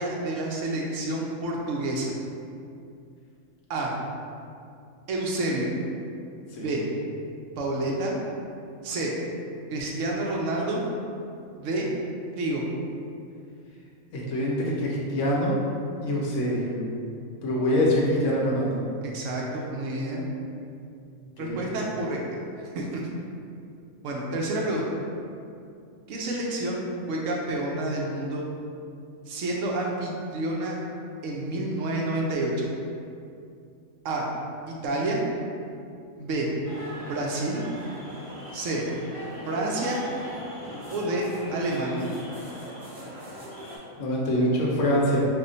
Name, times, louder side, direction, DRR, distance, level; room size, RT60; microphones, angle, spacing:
voice 1, 0.0-2.1 3.7-3.9 5.1-5.7 6.6-6.8 7.6-8.1 8.8-9.1 9.7-10.8 11.5-11.9 12.4-12.6 19.0-20.2 21.4-22.2 22.7-23.1 24.0-24.9 26.1-28.4 29.3-30.8 31.2-32.7 34.0-34.3 34.7-35.2 36.2-36.5 37.0-37.6 38.5-38.8 39.5-40.0 40.9-42.1, right 2 dB, 70° right, -2 dB, 0.9 m, -29 dB
voice 2, 14.1-15.5 16.0-16.7 17.4-18.7 21.4-21.6 44.0-45.3, equal, 65° left, -4 dB, 0.9 m, -24 dB
sound 1, 36.6-43.8, equal, 30° right, 0.7 m, -39 dB
3.4 x 2.1 x 3.8 m, 2.5 s
omnidirectional pair, 1.4 m